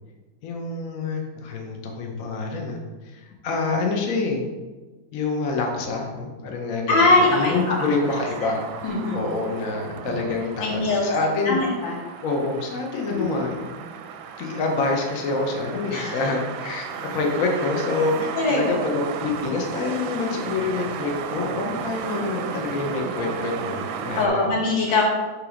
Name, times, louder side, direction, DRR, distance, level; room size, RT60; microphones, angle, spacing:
voice 1, 0.4-4.4 5.1-8.6 9.1-11.6 12.2-13.8 14.4-24.5, left 3 dB, 55° left, 1 dB, 1.1 m, -27 dB
voice 2, 6.9-7.9 8.4-8.5 8.8-9.2 10.6-11.0 11.4-12.0 13.1-13.3 15.9-16.3 18.4-18.7 24.2-25.0, left 2 dB, 75° left, -3 dB, 2.4 m, -22 dB
sound 1, 7.2-24.3, right 7 dB, 90° right, 1.4 m, -34 dB
7.6 x 3.4 x 4.9 m, 1.3 s
omnidirectional pair, 2.1 m